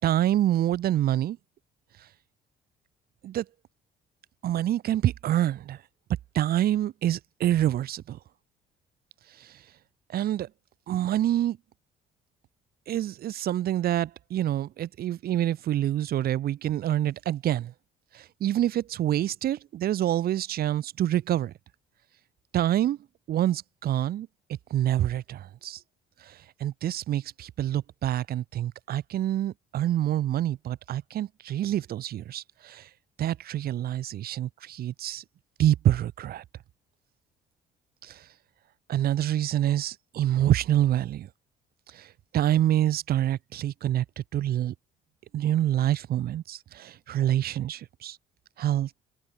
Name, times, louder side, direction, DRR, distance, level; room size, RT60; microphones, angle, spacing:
voice 1, 0.0-1.4 3.2-3.5 4.4-5.8 6.3-8.2 9.4-9.6 10.1-10.5 10.9-11.6 12.9-17.7 18.1-21.5 22.5-23.0 23.3-24.3 24.7-25.8 26.2-32.9 33.2-35.2 35.6-36.4 38.0-38.3 38.9-41.3 41.9-44.7 45.3-48.2 48.6-49.0, right 12 dB, 65° right, 5.6 m, -27 dB
cardioid pair, 110°, 17 cm